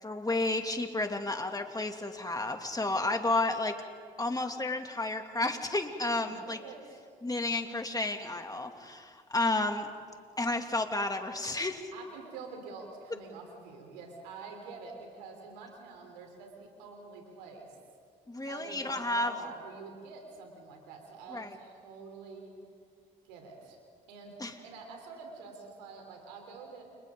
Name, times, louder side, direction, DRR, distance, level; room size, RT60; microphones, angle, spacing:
voice 1, 0.0-3.8 4.2-6.6 7.2-9.9 10.4-11.8 18.3-19.3 21.3-21.5 24.4-24.5, left 2 dB, 20° left, 4 dB, 2.6 m, -31 dB
voice 2, 6.2-7.0 11.9-17.7 18.5-22.5 23.3-23.8 24.1-24.3 24.6-26.8, right 4 dB, 90° right, 2 dB, 3.7 m, -47 dB
29.5 x 27.0 x 3.9 m, 2.1 s
hypercardioid pair, 50°, 20 cm